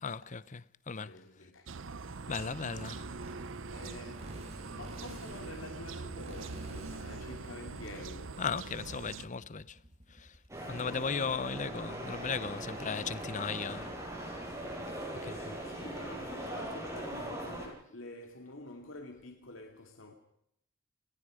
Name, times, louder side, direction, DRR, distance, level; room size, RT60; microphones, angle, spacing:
voice 1, 0.0-1.2 2.3-3.1 8.4-9.8 10.1-10.3 10.7-13.9 15.2-15.6, left 5 dB, 40° left, 0.8 m, -36 dB
voice 2, 1.0-1.7 3.7-8.4 10.5-11.5 15.6-20.1, left 2 dB, 75° left, 2.7 m, -48 dB
sound 1, 1.7-9.2, right 4 dB, 70° right, 0.7 m, -43 dB
Motorcycle, 2.0-10.6, equal, 30° right, 4.8 m, -49 dB
sound 2, 10.5-17.7, right 1 dB, 15° right, 7.9 m, -40 dB
30.0 x 20.0 x 5.1 m
head